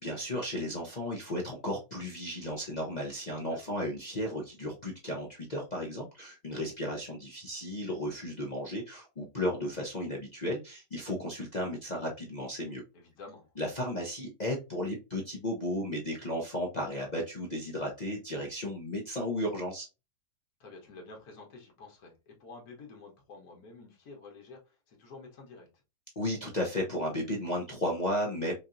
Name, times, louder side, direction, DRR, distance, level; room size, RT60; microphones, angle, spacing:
voice 1, 0.0-12.8 13.6-19.9 26.2-28.5, left 1 dB, 40° left, -3 dB, 0.6 m, -34 dB
voice 2, 12.9-13.5 20.6-25.7, left 3 dB, 65° left, 1 dB, 1.7 m, -50 dB
5.2 x 2.8 x 2.5 m, 0.28 s
omnidirectional pair, 1.8 m